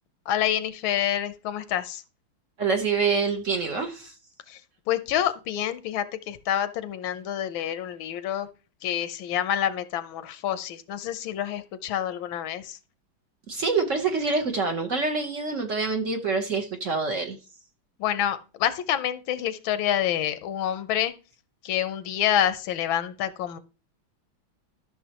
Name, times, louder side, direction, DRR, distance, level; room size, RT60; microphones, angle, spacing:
voice 1, 0.3-2.0 4.5-4.6 4.9-8.5 8.8-12.8 18.0-21.1 21.6-23.6, left 10 dB, 85° left, 13 dB, 1.5 m, -27 dB
voice 2, 2.6-4.1 13.5-17.4, right 4 dB, 50° right, 5 dB, 1.1 m, -26 dB
13.0 x 6.3 x 2.9 m, 0.33 s
omnidirectional pair, 2.1 m